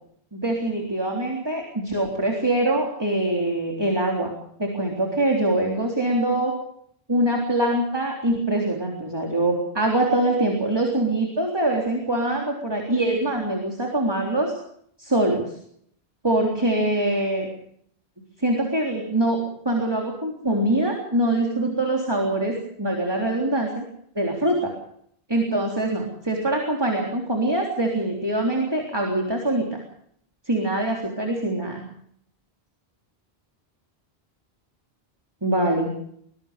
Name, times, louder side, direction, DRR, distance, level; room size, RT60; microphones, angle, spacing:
voice 1, 0.3-4.3 4.6-6.5 7.1-14.5 15.0-15.5 16.2-17.5 18.4-19.4 19.7-23.8 24.2-24.7 25.3-29.8 30.5-31.8 35.4-35.9, right 1 dB, 25° right, 0 dB, 3.7 m, -23 dB
23.5 x 21.5 x 5.2 m, 0.67 s
omnidirectional pair, 1.0 m